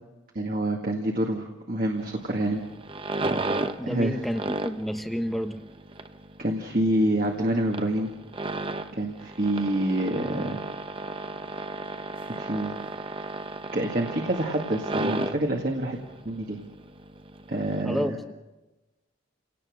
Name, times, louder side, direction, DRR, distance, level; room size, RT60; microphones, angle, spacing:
voice 1, 0.4-2.6 3.8-4.2 6.4-8.1 8.9-10.6 12.2-12.7 13.7-16.0 16.3-16.6 17.5-18.2, right 1 dB, 50° right, 1 dB, 2.0 m, -27 dB
sound 1, 2.0-17.8, right 2 dB, 25° right, 0.9 m, -34 dB
voice 2, 3.8-5.6 17.8-18.1, equal, ahead, 7 dB, 1.0 m, -30 dB
29.0 x 18.0 x 6.5 m, 1.1 s
head